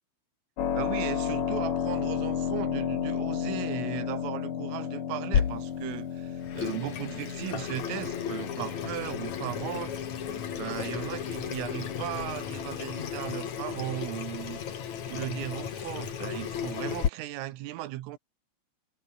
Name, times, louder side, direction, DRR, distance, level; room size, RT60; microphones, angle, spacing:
Keyboard (musical), 0.6-13.1, left 8 dB, 65° left, 5.4 m, -34 dB
voice 1, 0.8-9.9 10.5-14.6 15.1-18.2, right 15 dB, 85° right, 4.0 m, -37 dB
Water tap faucet / Sink (filling or washing), 5.3-17.1, left 8 dB, 45° left, 2.8 m, -34 dB
omnidirectional pair, 5.7 m